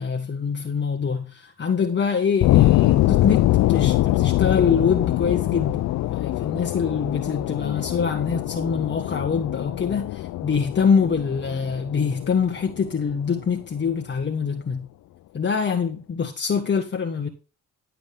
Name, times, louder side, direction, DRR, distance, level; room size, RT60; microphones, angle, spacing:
voice 1, 0.0-14.9 15.3-17.3, left 6 dB, 35° left, 1.6 m, -24 dB
sound 1, 2.4-13.2, left 16 dB, 70° left, 0.5 m, -23 dB
12.0 x 7.8 x 3.7 m
cardioid pair, 90°, 30 cm